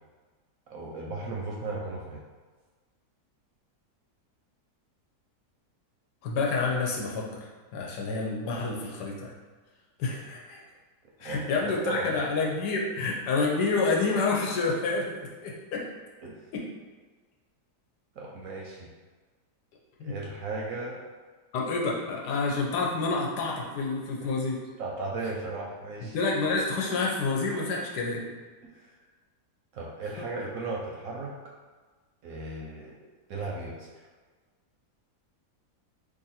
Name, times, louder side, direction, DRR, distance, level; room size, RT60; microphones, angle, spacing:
voice 1, 0.7-2.2 11.2-12.2 16.2-16.3 18.2-18.9 20.0-21.0 24.2-24.3 24.8-26.1 29.7-31.3 32.2-33.0 33.3-33.9, right 3 dB, 70° right, -3 dB, 0.9 m, -36 dB
voice 2, 6.2-9.3 10.0-10.6 11.2-15.9 16.5-16.7 20.0-20.1 21.5-24.6 26.0-28.3 30.2-30.3, left 3 dB, 80° left, -2 dB, 1.3 m, -28 dB
2.9 x 2.6 x 4.1 m, 1.4 s
omnidirectional pair, 1.8 m